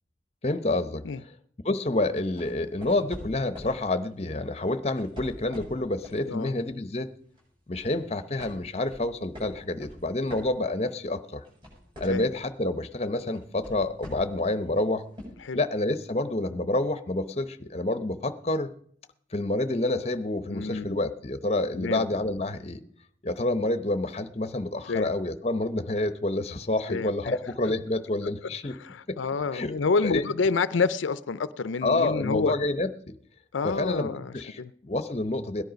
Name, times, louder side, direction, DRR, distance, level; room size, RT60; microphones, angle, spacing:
voice 1, 0.4-1.1 1.6-7.1 7.7-11.4 12.0-15.0 15.5-18.7 19.3-22.8 23.2-28.8 29.1-29.2 29.5-29.8 30.0-30.2 31.8-33.1 33.6-35.6, left 2 dB, 35° left, 11 dB, 0.7 m, -28 dB
sound 1, 2.1-3.8 4.8-6.3 6.7-6.9 7.3-8.0 8.4-11.0 11.3-12.5 13.3-14.4 15.2-15.3, left 1 dB, 25° right, 7.6 m, -44 dB
voice 2, 20.5-21.0 21.7-22.0 24.9-25.1 26.9-27.3 28.8-32.5 33.5-34.7, left 4 dB, 85° left, 15 dB, 0.5 m, -28 dB
17.5 x 10.5 x 5.1 m, 0.63 s
head